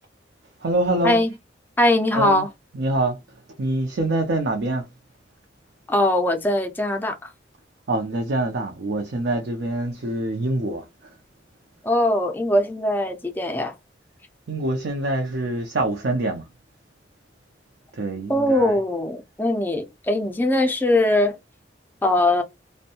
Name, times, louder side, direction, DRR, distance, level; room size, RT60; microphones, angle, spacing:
voice 1, 0.6-1.2 2.1-2.4 2.7-3.2 3.6-4.9 7.9-10.9 14.5-16.4 18.0-18.7, right 2 dB, 70° right, 0.5 m, -25 dB
voice 2, 1.8-2.5 5.9-7.3 11.8-13.7 18.3-21.4 22.0-22.4, left 1 dB, 10° left, 0.4 m, -21 dB
2.6 x 2.1 x 2.7 m
head